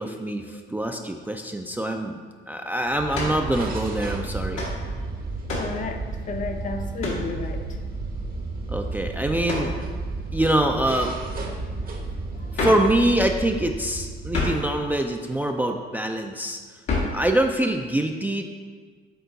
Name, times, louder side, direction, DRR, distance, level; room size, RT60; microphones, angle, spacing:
voice 1, 0.0-2.2 2.5-4.6 8.7-9.7 10.3-11.1 12.5-16.6 17.1-18.5, right 1 dB, 10° right, 3 dB, 0.3 m, -24 dB
sound 1, 2.9-15.1, right 3 dB, 45° right, 0.9 m, -32 dB
sound 2, 3.1-3.4 4.5-4.8 5.5-5.8 7.0-7.3 9.5-9.8 12.5-12.9 14.3-14.7 16.9-17.2, left 2 dB, 85° left, 1.5 m, -27 dB
voice 2, 5.6-7.6 12.4-12.5, left 3 dB, 40° left, 5 dB, 0.6 m, -32 dB
6.9 x 3.7 x 3.9 m, 1.5 s
cardioid pair, 90°, 20 cm